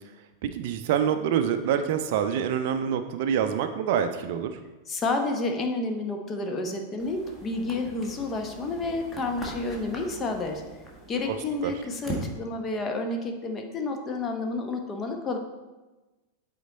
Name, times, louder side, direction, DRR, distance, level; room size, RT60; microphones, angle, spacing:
voice 1, 0.4-4.6 11.3-11.4 11.6-11.7, right 8 dB, 50° right, 9 dB, 0.4 m, -26 dB
voice 2, 4.9-10.6 11.1-15.4, left 3 dB, 25° left, 4 dB, 0.9 m, -30 dB
sound 1, 7.0-12.3, right 1 dB, 10° left, 1.4 m, -40 dB
8.0 x 4.3 x 3.9 m, 1.2 s
figure-of-eight pair, 90°, 0 cm